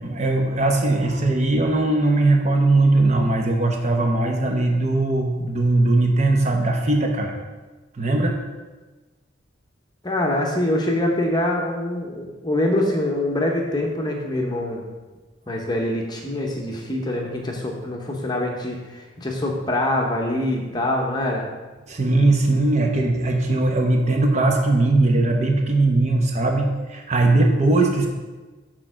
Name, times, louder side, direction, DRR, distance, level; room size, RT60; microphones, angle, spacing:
voice 1, 0.0-7.4 7.9-8.4 21.9-28.1, right 2 dB, 35° right, 2 dB, 1.0 m, -19 dB
voice 2, 10.0-14.8 15.5-21.5, left 1 dB, 20° left, 0 dB, 0.9 m, -24 dB
6.7 x 4.5 x 6.2 m, 1.2 s
head